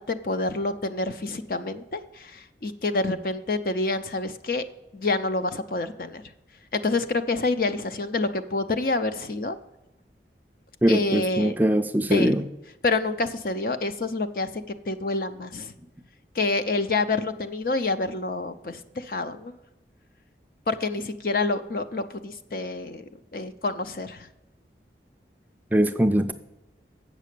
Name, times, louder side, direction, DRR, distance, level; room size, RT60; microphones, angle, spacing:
voice 1, 0.0-4.6 4.9-6.2 6.7-9.6 10.9-11.6 12.1-12.3 12.8-14.5 14.9-15.7 16.3-19.5 20.7-23.0 23.3-24.3, left 3 dB, 50° left, 10 dB, 0.6 m, -27 dB
voice 2, 10.8-12.4 25.7-26.3, right 1 dB, 10° right, 7 dB, 0.4 m, -21 dB
8.4 x 6.2 x 6.6 m, 0.97 s
head